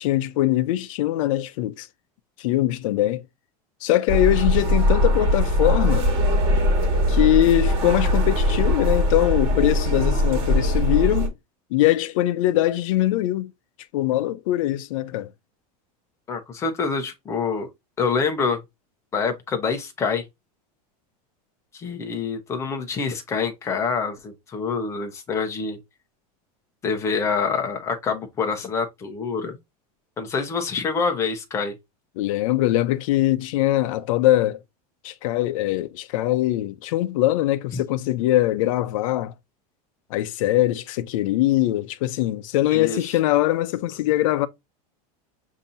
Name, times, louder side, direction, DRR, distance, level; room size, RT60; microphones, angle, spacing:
voice 1, 0.0-1.9 2.4-3.2 3.8-6.1 7.1-11.3 11.7-13.5 13.9-15.3 32.2-34.6 35.0-39.3 40.1-44.5, left 14 dB, 55° left, 0.6 m, -22 dB
sound 1, 4.1-11.3, equal, 30° right, 1.6 m, -21 dB
voice 2, 16.3-17.7 18.0-18.6 19.1-20.2 21.7-25.8 26.8-29.5 30.2-31.7 37.7-37.8 42.7-43.0, left 5 dB, 15° left, 0.7 m, -26 dB
7.0 x 2.7 x 2.5 m
supercardioid pair, 180°, 20 cm